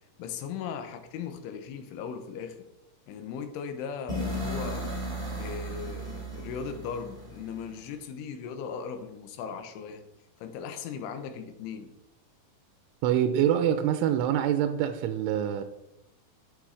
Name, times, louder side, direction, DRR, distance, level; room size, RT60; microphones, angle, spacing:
voice 1, 0.2-2.7 3.1-4.9 5.4-10.1 10.4-11.9, left 6 dB, 90° left, 7 dB, 3.6 m, -38 dB
sound 1, 4.1-8.0, equal, 10° right, 1.8 m, -35 dB
voice 2, 13.0-15.6, right 10 dB, 90° right, 9 dB, 3.1 m, -25 dB
11.5 x 9.6 x 4.8 m, 0.90 s
omnidirectional pair, 5.5 m